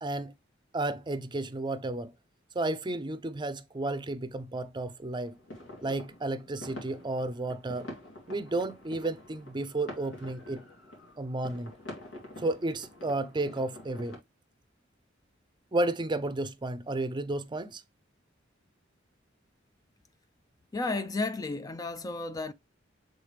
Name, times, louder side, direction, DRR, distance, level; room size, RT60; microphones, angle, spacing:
voice 1, 0.0-0.3 0.7-2.1 2.5-5.3 5.8-7.9 8.3-10.6 11.2-11.7 12.4-14.2 15.7-17.8, right 2 dB, 25° right, 0.6 m, -32 dB
sound 1, 5.2-14.2, left 1 dB, 85° left, 2.9 m, -47 dB
voice 2, 20.7-22.5, left 3 dB, 20° left, 0.4 m, -32 dB
7.2 x 3.9 x 3.3 m
head